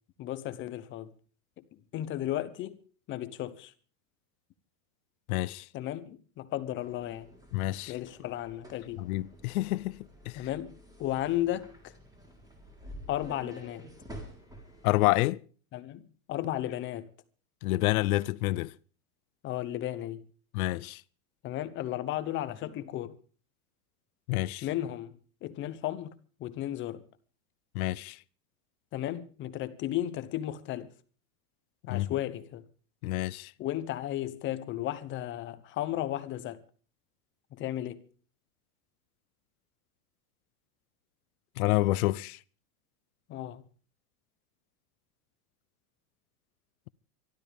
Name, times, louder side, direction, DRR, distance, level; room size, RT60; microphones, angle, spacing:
voice 1, 0.2-1.1 1.6-2.8 3.1-3.7 5.7-7.3 7.9-9.0 10.3-11.9 13.1-13.9 15.7-17.1 19.4-20.3 21.4-23.2 24.6-27.1 28.9-30.9 31.9-32.7 33.6-36.6 37.5-38.1 43.3-43.6, left 13 dB, 25° left, 0.9 m, -34 dB
voice 2, 5.3-5.7 7.5-7.9 9.0-10.4 14.8-15.4 17.6-18.7 20.5-21.0 24.3-24.7 27.7-28.2 31.9-32.1 33.0-33.5 41.6-42.4, left 19 dB, 70° left, 0.7 m, -28 dB
sound 1, 6.8-14.9, equal, 10° right, 4.0 m, -50 dB
24.5 x 13.0 x 3.5 m
supercardioid pair, 165°, 45 cm